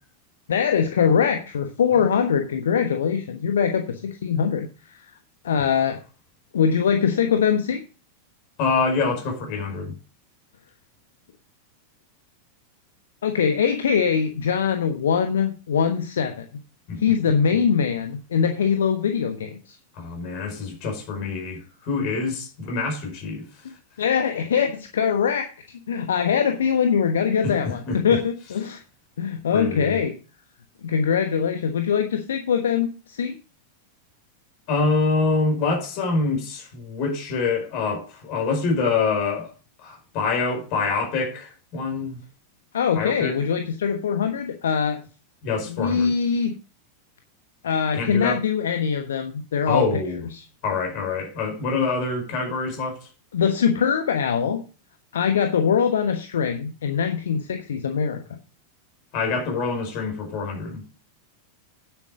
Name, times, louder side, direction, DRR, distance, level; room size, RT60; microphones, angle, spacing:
voice 1, 0.5-5.1 5.4-6.0 6.5-7.8 13.2-16.5 17.0-19.8 24.0-25.5 25.7-28.8 29.2-30.1 30.8-33.4 42.7-45.0 45.7-46.6 47.6-49.8 53.3-54.6 55.1-58.2, left 7 dB, 65° left, 1.1 m, -22 dB
voice 2, 8.6-9.9 16.9-17.0 17.5-17.6 20.0-23.4 27.4-28.2 29.5-30.0 34.7-39.5 39.8-42.2 42.9-43.3 45.4-46.1 47.9-48.4 49.7-50.2 50.6-53.0 59.1-60.8, left 4 dB, 45° left, 5.1 m, -25 dB
9.7 x 8.1 x 5.0 m
figure-of-eight pair, 90°, 0 cm